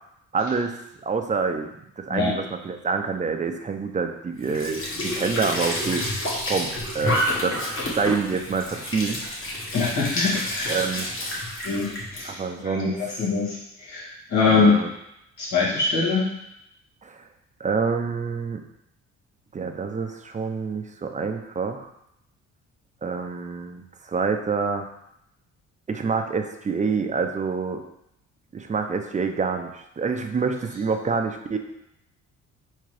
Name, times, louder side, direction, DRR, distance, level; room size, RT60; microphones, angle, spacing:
voice 1, 0.3-1.7 2.0-6.1 6.5-9.5 10.7-11.4 12.3-13.0 14.5-14.9 17.0-17.2 17.6-18.6 19.5-21.9 23.0-24.9 25.9-27.8 28.5-31.6, right 5 dB, 25° right, 6 dB, 0.5 m, -27 dB
Squeak / Sink (filling or washing) / Trickle dribble, 4.4-12.3, left 1 dB, 45° left, 1.4 m, -29 dB
voice 2, 9.7-10.8 11.6-14.8 15.4-16.3, left 4 dB, 70° left, -5 dB, 1.8 m, -24 dB
4.4 x 3.7 x 3.3 m, 0.80 s
cardioid pair, 90°, 30 cm